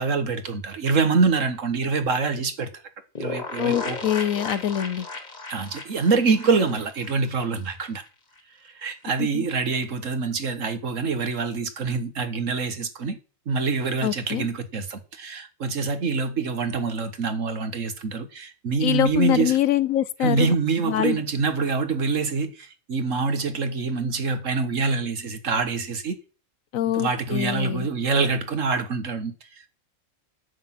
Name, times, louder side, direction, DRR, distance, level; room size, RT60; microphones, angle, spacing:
voice 1, 0.0-2.7 3.2-4.0 5.5-8.0 8.6-13.2 13.5-19.5 20.2-26.2 26.9-29.7, right 4 dB, 65° right, 1.8 m, -25 dB
sound 1, 3.2-7.8 8.0-8.1 8.4-8.5, left 3 dB, 30° left, 1.6 m, -35 dB
voice 2, 3.6-5.1 9.2-9.4 14.0-14.5 18.8-20.5 20.8-21.2 26.7-27.9, left 11 dB, 75° left, 1.1 m, -24 dB
10.0 x 7.8 x 5.9 m
omnidirectional pair, 1.5 m